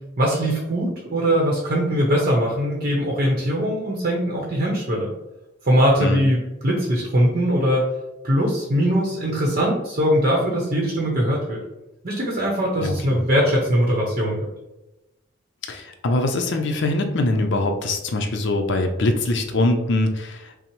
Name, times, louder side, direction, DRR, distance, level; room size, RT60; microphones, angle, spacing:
voice 1, 0.2-5.1 5.6-7.8 8.2-11.6 12.0-14.4, equal, 45° right, -2 dB, 0.8 m, -21 dB
voice 2, 6.0-6.3 12.8-13.2 15.7-20.5, left 2 dB, 65° left, 5 dB, 0.5 m, -23 dB
5.7 x 2.0 x 3.0 m, 0.98 s
head